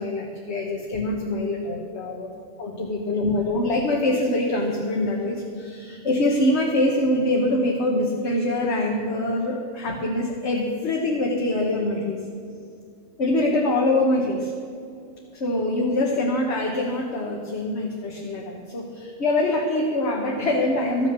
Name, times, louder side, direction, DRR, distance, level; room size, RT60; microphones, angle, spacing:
voice 1, 0.0-2.3 2.6-12.2 13.2-14.5 15.3-21.1, left 1 dB, 60° left, -1 dB, 1.6 m, -24 dB
13.5 x 9.9 x 6.8 m, 2.4 s
omnidirectional pair, 1.3 m